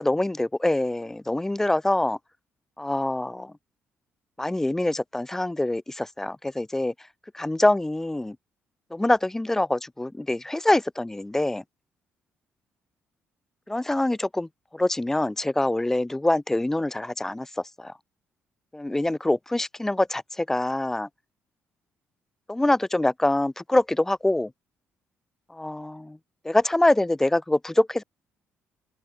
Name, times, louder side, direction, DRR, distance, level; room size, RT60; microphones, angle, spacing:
voice 1, 0.0-2.2 2.8-3.5 4.4-6.9 7.3-8.4 8.9-11.6 13.7-17.9 18.7-21.1 22.5-24.5 25.5-26.2 26.4-28.0, left 1 dB, 10° left, 3.7 m, -25 dB
open air
cardioid pair, 115°, 4 cm